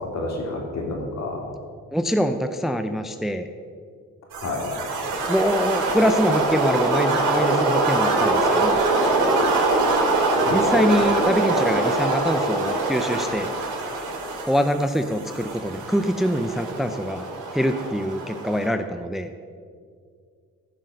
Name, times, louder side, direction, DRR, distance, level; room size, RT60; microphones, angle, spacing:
voice 1, 0.0-1.4 4.3-4.6 10.5-10.6, left 2 dB, 60° left, 0 dB, 3.1 m, -29 dB
voice 2, 1.9-3.5 5.3-8.8 10.5-13.5 14.5-17.3 17.5-19.3, equal, ahead, 8 dB, 0.6 m, -24 dB
sound 1, 4.3-18.7, right 2 dB, 85° right, 2.8 m, -23 dB
15.0 x 6.3 x 6.6 m, 2.1 s
cardioid pair, 90°, 30 cm